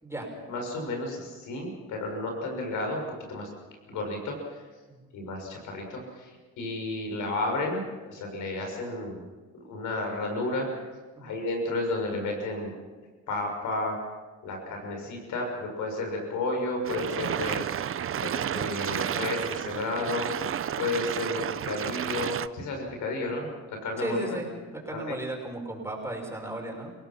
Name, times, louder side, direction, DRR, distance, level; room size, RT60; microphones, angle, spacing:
voice 1, 0.3-3.0 3.3-3.5 3.9-4.6 5.1-6.3 6.6-7.8 8.1-9.2 9.6-10.7 11.2-12.7 13.3-14.0 14.4-17.6 18.1-20.3 20.7-23.6 23.8-24.4 24.9-25.2, left 2 dB, 85° left, 2 dB, 6.3 m, -32 dB
sound 1, 16.8-22.5, right 9 dB, 45° right, 0.7 m, -31 dB
voice 2, 24.0-24.5 24.9-26.9, right 1 dB, 10° right, 0 dB, 6.1 m, -35 dB
29.0 x 17.5 x 5.9 m, 1.3 s
cardioid pair, 90°, 30 cm